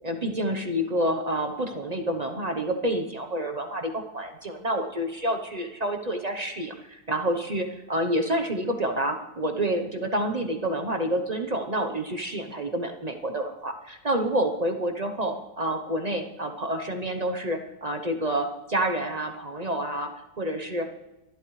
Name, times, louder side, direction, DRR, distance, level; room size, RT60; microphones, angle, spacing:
voice 1, 0.0-20.9, right 1 dB, 45° right, 5 dB, 0.5 m, -28 dB
24.5 x 11.5 x 3.2 m, 1.0 s
omnidirectional pair, 2.1 m